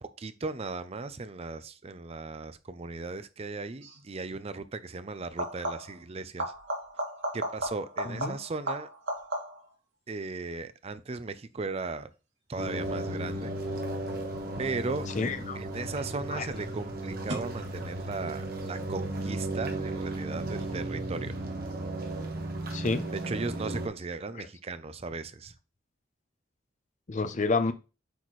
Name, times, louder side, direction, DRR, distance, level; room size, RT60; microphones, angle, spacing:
voice 1, 0.0-6.5 7.3-8.9 10.1-12.1 12.5-13.5 14.6-15.1 15.5-21.4 23.1-25.5, right 3 dB, 35° right, 0.5 m, -37 dB
sound 1, 3.8-4.1 5.2-6.0 6.4-9.8 15.2-15.8 17.3-17.4, right 1 dB, 85° right, 2.3 m, -35 dB
voice 2, 8.1-8.4 15.2-15.6 16.3-16.5 22.7-23.1 24.4-24.5 27.1-27.7, left 3 dB, 40° left, 0.6 m, -29 dB
sound 2, 12.6-23.9, right 1 dB, 55° right, 1.4 m, -35 dB
8.1 x 4.3 x 3.2 m
head